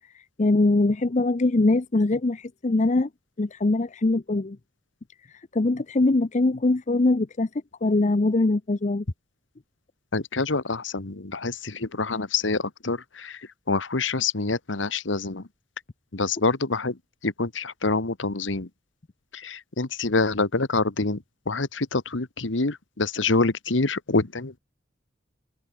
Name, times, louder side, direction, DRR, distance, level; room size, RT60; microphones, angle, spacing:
voice 1, 0.4-3.1 3.4-4.6 5.5-7.5 7.8-9.0, left 2 dB, 40° left, 0.6 m, -22 dB
voice 2, 10.1-13.4 13.7-15.4 16.1-17.0 17.2-18.7 19.3-21.2 21.5-24.6, left 3 dB, 85° left, 1.6 m, -26 dB
head